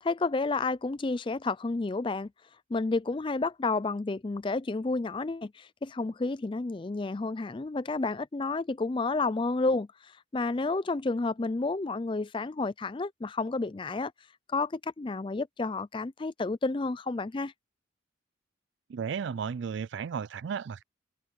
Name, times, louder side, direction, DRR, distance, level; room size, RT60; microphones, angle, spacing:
voice 1, 0.0-2.3 2.7-14.1 14.5-17.5, left 3 dB, 25° left, 0.4 m, -30 dB
voice 2, 18.9-20.8, right 6 dB, 60° right, 0.3 m, -34 dB
head